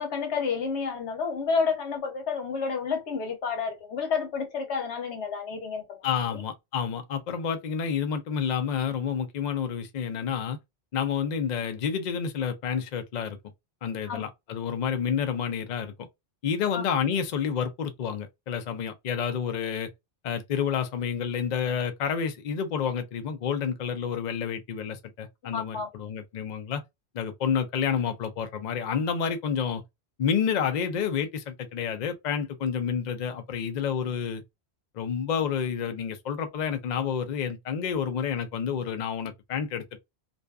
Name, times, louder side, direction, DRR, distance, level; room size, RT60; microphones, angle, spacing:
voice 1, 0.0-6.0 6.3-6.4 14.1-14.2 16.7-16.8 25.5-25.9, left 5 dB, 85° left, 1.1 m, -30 dB
voice 2, 6.0-10.6 10.9-13.4 13.8-16.1 16.4-19.9 20.2-26.8 27.1-29.8 30.2-34.4 34.9-40.0, left 7 dB, 55° left, 0.5 m, -29 dB
2.6 x 2.3 x 2.2 m
omnidirectional pair, 1.1 m